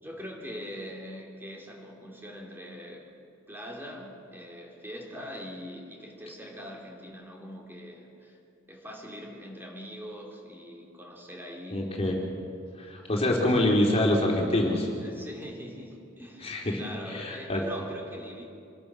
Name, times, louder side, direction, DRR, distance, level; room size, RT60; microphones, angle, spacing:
voice 1, 0.0-3.1 3.5-8.4 8.7-11.8 15.0-18.4, equal, 10° right, -1 dB, 3.3 m, -42 dB
voice 2, 11.7-12.2 12.8-14.9 16.4-16.8 17.1-17.6, left 1 dB, 30° left, -1 dB, 3.5 m, -25 dB
27.5 x 21.5 x 6.2 m, 2.5 s
head